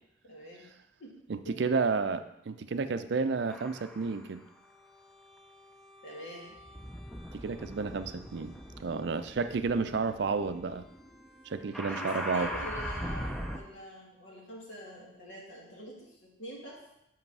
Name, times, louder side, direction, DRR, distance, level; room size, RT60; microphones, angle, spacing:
voice 1, 0.2-0.7 1.0-1.1 1.4-1.7 6.0-6.6 11.9-16.8, equal, 75° left, -4 dB, 2.2 m, -45 dB
voice 2, 1.3-4.4 7.3-10.9 11.4-12.5, right 4 dB, 60° right, 11 dB, 0.4 m, -31 dB
sound 1, 3.5-4.3 5.1-13.6, equal, ahead, 0.4 m, -41 dB
5.7 x 5.4 x 5.4 m, 0.83 s
head